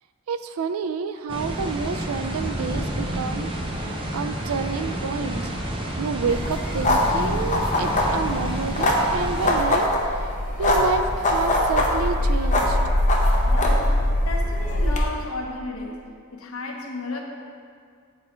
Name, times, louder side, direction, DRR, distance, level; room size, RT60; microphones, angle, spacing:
voice 1, 0.3-3.5 3.8-5.5 6.0-9.9 10.1-10.3 10.6-12.8, right 5 dB, 85° right, 10 dB, 0.4 m, -29 dB
sound 1, 1.3-9.6, right 1 dB, 25° right, 0.7 m, -29 dB
sound 2, 6.3-15.0, left 1 dB, 35° left, 0.8 m, -22 dB
voice 2, 13.5-17.2, left 2 dB, 75° left, 1 dB, 1.0 m, -33 dB
8.0 x 4.4 x 4.3 m, 2.2 s
head